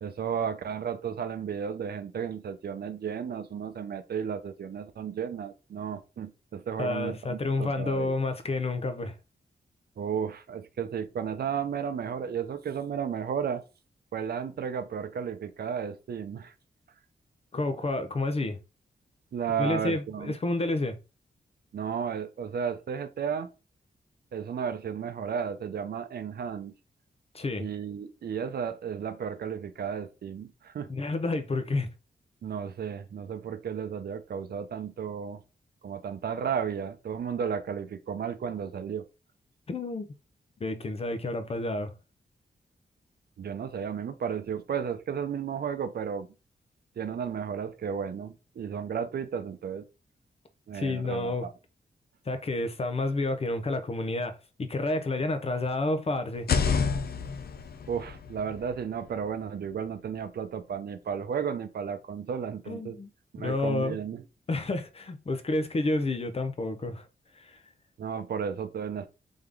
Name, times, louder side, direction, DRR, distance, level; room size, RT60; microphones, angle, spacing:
voice 1, 0.0-8.1 10.0-13.6 14.1-16.5 19.3-20.3 21.7-23.5 24.3-26.7 27.6-30.9 32.4-35.4 35.8-39.0 43.4-46.3 47.0-49.8 50.7-51.5 57.9-63.0 63.3-64.2 68.0-69.1, right 7 dB, 70° right, 0.6 m, -33 dB
voice 2, 6.8-9.2 17.5-18.6 19.6-21.0 27.3-27.7 30.9-31.9 39.7-40.1 40.6-41.9 50.7-51.5 52.3-56.5 62.7-63.1 63.4-64.0 64.5-67.1 67.4-67.6, left 2 dB, 35° left, 0.7 m, -30 dB
sound 1, 56.3-60.2, left 5 dB, 70° left, 0.6 m, -31 dB
3.7 x 3.6 x 3.4 m
wide cardioid pair, 100°, 17 cm